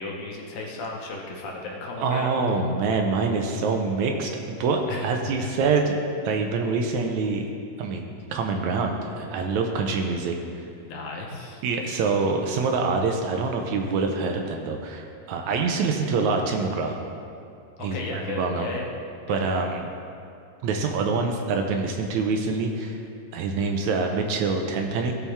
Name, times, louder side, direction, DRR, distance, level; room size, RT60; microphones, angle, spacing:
voice 1, 0.0-2.4 4.9-5.1 5.4-5.5 10.8-11.6 17.8-18.8 19.3-19.4, left 3 dB, 90° left, -1 dB, 2.9 m, -34 dB
voice 2, 2.0-5.9 6.2-7.5 7.8-10.6 11.6-17.0 17.8-18.7 19.3-19.8 20.6-23.0 23.3-25.1, right 4 dB, 80° right, 3 dB, 1.8 m, -25 dB
15.5 x 5.7 x 3.5 m, 2.5 s
omnidirectional pair, 3.8 m